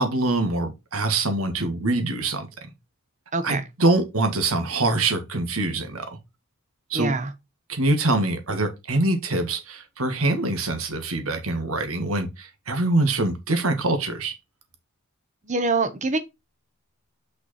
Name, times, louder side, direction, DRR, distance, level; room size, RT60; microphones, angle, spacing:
voice 1, 0.0-2.5 3.4-6.2 6.9-7.1 7.7-14.3, right 2 dB, 75° right, 1.8 m, -24 dB
voice 2, 3.3-3.7 6.9-7.3 15.4-16.2, right 3 dB, 35° right, 1.1 m, -24 dB
5.8 x 4.9 x 4.3 m
head